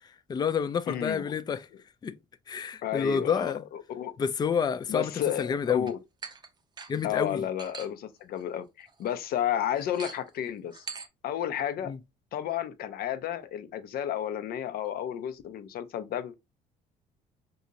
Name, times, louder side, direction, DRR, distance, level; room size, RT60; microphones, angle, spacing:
voice 1, 0.3-1.7 2.0-2.1 2.5-3.6 4.2-5.1 5.4-5.9 6.9-7.4 11.9-12.0, left 6 dB, 25° left, 0.4 m, -28 dB
voice 2, 0.9-1.3 2.8-4.1 4.9-6.0 7.0-10.9 11.2-11.9 12.3-16.3, left 10 dB, 65° left, 0.6 m, -32 dB
sound 1, 5.9-6.0 6.2-6.5 6.8-7.0 7.6-7.9 8.4-8.5 8.8-9.1 9.8-10.3 10.7-11.1, right 5 dB, 25° right, 0.6 m, -42 dB
3.8 x 2.8 x 2.4 m
cardioid pair, 110°, 17 cm